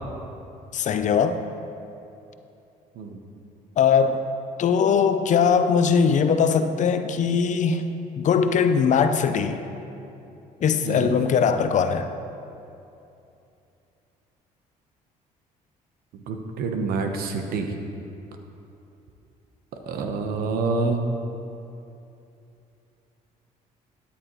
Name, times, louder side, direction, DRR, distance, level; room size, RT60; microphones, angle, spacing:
voice 1, 0.7-1.4 3.8-4.2 4.6-7.8 8.2-9.6 10.6-12.1, left 6 dB, 50° left, 9 dB, 0.6 m, -20 dB
voice 2, 10.8-11.2 16.1-17.7 19.9-21.0, right 4 dB, 75° right, 5 dB, 1.0 m, -27 dB
12.5 x 10.0 x 3.1 m, 2.8 s
cardioid pair, 85°, 16 cm